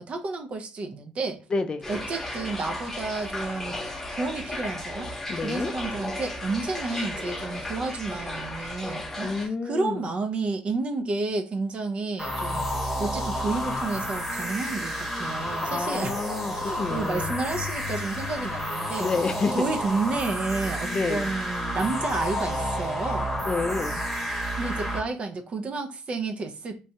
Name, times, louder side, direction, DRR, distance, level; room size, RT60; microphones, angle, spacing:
voice 1, 0.0-1.4 1.9-3.8 4.1-5.1 5.4-16.2 16.6-19.1 19.5-23.3 24.6-26.9, right 3 dB, 45° right, 0.5 m, -31 dB
voice 2, 1.5-1.8 5.3-5.7 9.2-10.1 15.6-17.3 19.0-19.7 20.9-21.3 23.4-24.0, left 4 dB, 35° left, 0.4 m, -29 dB
sound 1, 1.8-9.5, left 1 dB, 15° left, 0.8 m, -35 dB
sound 2, 12.2-25.0, equal, 5° right, 1.0 m, -30 dB
3.1 x 2.1 x 2.8 m
supercardioid pair, 85°, 3 cm